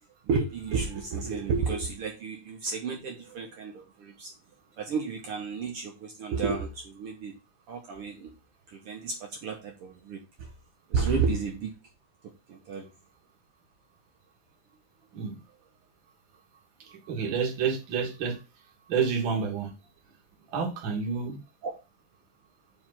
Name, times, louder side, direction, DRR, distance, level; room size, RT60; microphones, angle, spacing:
voice 1, 0.2-4.3 4.8-7.4 7.7-8.3 8.7-10.5 10.9-11.7 12.2-12.9 21.6-21.7, right 5 dB, 75° right, 2 dB, 1.3 m, -32 dB
voice 2, 16.9-18.4 18.9-19.7 20.5-21.4, right 6 dB, 50° right, 1 dB, 1.8 m, -29 dB
4.9 x 4.7 x 5.6 m, 0.28 s
omnidirectional pair, 3.6 m